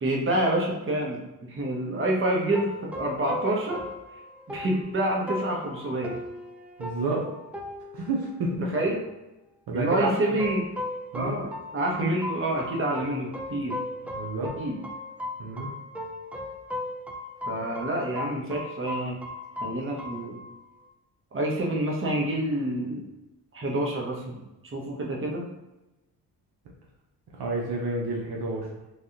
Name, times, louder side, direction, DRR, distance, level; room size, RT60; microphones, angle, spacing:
voice 1, 0.0-1.2 1.5-2.7 2.9-3.8 4.5-6.1 8.7-9.0 9.7-10.6 11.1-13.8 14.6-14.8 17.5-19.2 19.6-20.4 21.3-23.1 23.5-24.4 24.7-25.5, right 1 dB, 30° right, -2 dB, 0.9 m, -27 dB
sound 1, 2.5-9.1 10.0-20.9, left 2 dB, 5° right, 0.3 m, -38 dB
voice 2, 6.8-7.3 7.9-8.7 9.7-10.1 11.1-11.4 14.1-14.5 15.4-15.7 27.4-28.7, right 2 dB, 65° right, -2 dB, 0.8 m, -29 dB
3.3 x 2.4 x 2.7 m, 1.0 s
cardioid pair, 75°, 41 cm